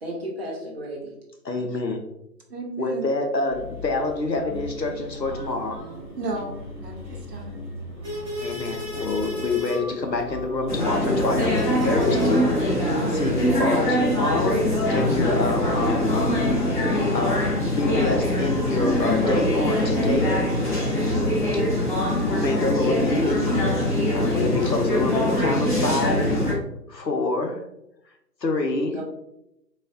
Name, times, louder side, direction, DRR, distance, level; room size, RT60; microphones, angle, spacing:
voice 1, 0.0-1.1 28.9-29.0, right 1 dB, 35° right, -4 dB, 0.9 m, -33 dB
voice 2, 1.4-2.0 2.8-5.8 8.4-20.4 21.5-21.9 22.3-23.8 24.1-26.4 26.9-27.6 28.4-29.0, left 2 dB, 85° left, 4 dB, 0.9 m, -27 dB
voice 3, 2.5-3.0 6.2-7.6, right 2 dB, 70° right, 1 dB, 1.0 m, -34 dB
sound 1, 3.5-21.6, left 1 dB, 5° right, 1.0 m, -37 dB
sound 2, 10.7-26.5, left 1 dB, 30° left, 0.9 m, -23 dB
4.2 x 2.4 x 2.4 m, 0.82 s
figure-of-eight pair, 150°, 49 cm